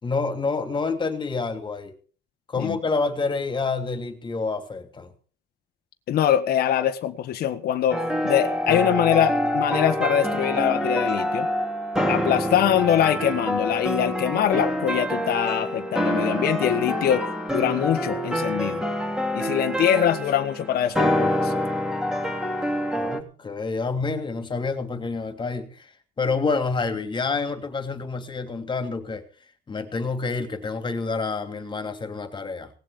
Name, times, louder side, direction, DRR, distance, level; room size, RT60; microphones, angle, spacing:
voice 1, 0.0-1.9 2.5-5.1 22.9-25.9 26.2-29.2 29.7-32.7, left 4 dB, 30° left, 8 dB, 3.0 m, -28 dB
voice 2, 6.1-11.5 12.1-17.2 17.5-18.8 19.3-21.5, left 10 dB, 65° left, 7 dB, 1.4 m, -23 dB
sound 1, 7.9-23.2, equal, 5° right, 3.3 m, -26 dB
19.0 x 7.8 x 8.3 m, 0.42 s
cardioid pair, 110°, 17 cm